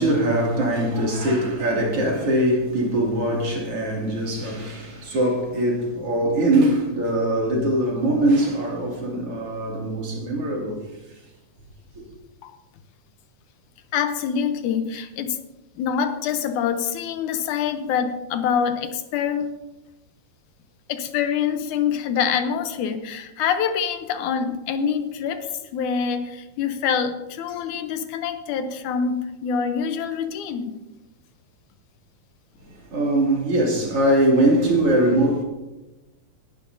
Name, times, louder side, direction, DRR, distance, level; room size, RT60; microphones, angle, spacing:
voice 1, 0.0-10.9 32.7-35.4, right 1 dB, 50° right, 3.3 m, -22 dB
voice 2, 13.9-15.4 15.8-19.5 20.9-30.7, left 7 dB, 80° left, 2.2 m, -25 dB
19.5 x 11.5 x 2.7 m
omnidirectional pair, 3.6 m